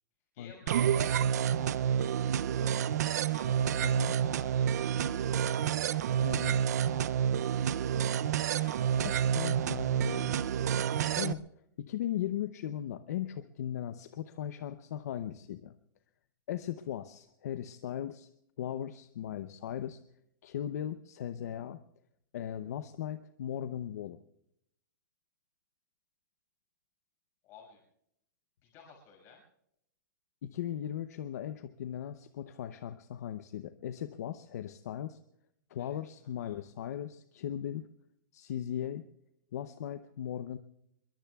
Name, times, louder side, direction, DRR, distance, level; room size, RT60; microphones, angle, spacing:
voice 1, 0.3-5.8 7.3-8.8 27.4-27.8 28.6-29.4 35.8-35.9 36.4-36.6, left 5 dB, 25° left, 1 dB, 5.9 m, -56 dB
sound 1, 0.7-11.3, right 9 dB, 55° right, 0.5 m, -29 dB
voice 2, 3.8-4.1 6.2-6.6 9.3-10.4 11.2-11.4 11.8-15.8 16.5-18.3 18.6-20.0 20.4-21.8 22.3-24.2 30.4-35.2 35.7-37.8 38.3-39.0 39.5-40.6, left 10 dB, 55° left, 10 dB, 0.7 m, -38 dB
26.0 x 22.5 x 2.3 m, 0.75 s
supercardioid pair, 180°, 10 cm